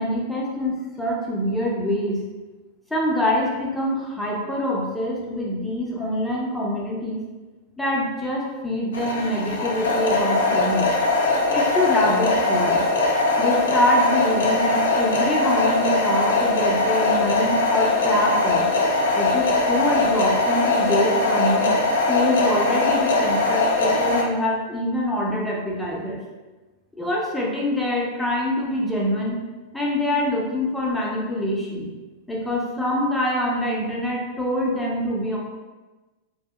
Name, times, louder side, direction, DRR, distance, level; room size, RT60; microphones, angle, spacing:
voice 1, 0.0-2.2 2.9-7.2 7.8-10.9 11.5-12.8 13.4-18.7 19.1-21.7 22.1-26.2 27.0-29.4 29.7-31.9 32.3-35.4, left 1 dB, 5° left, -4 dB, 0.6 m, -25 dB
sound 1, 8.9-24.2, left 2 dB, 65° left, 0.4 m, -21 dB
2.7 x 2.7 x 2.3 m, 1.2 s
figure-of-eight pair, 90°, 0 cm